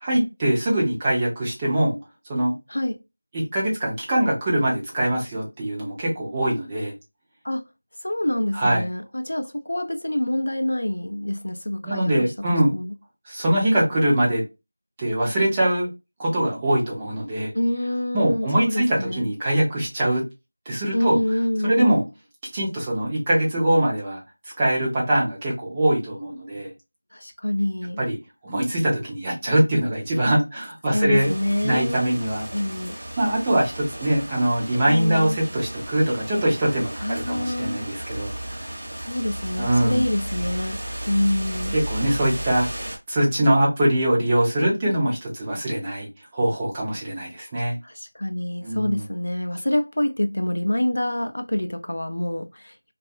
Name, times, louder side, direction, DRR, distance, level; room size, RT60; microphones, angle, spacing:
voice 1, 0.0-2.0 2.3-2.5 3.3-6.9 8.6-8.8 11.8-12.7 13.3-14.4 15.0-15.9 16.2-17.5 18.1-20.2 20.7-21.2 21.6-22.0 22.5-24.2 24.6-26.7 28.0-28.2 28.4-31.3 31.6-32.5 33.2-38.3 39.6-40.0 41.7-42.7 43.1-46.1 46.3-47.8 48.6-49.1, right 1 dB, 10° right, 0.5 m, -22 dB
voice 2, 2.7-3.0 7.4-7.6 8.0-12.9 17.5-19.3 20.9-22.1 27.1-28.0 30.9-33.0 34.8-35.4 37.0-37.9 39.0-41.8 47.8-52.8, left 1 dB, 65° left, 0.4 m, -26 dB
sound 1, 31.1-43.0, right 1 dB, 35° right, 0.9 m, -34 dB
2.5 x 2.3 x 2.5 m
figure-of-eight pair, 175°, 0 cm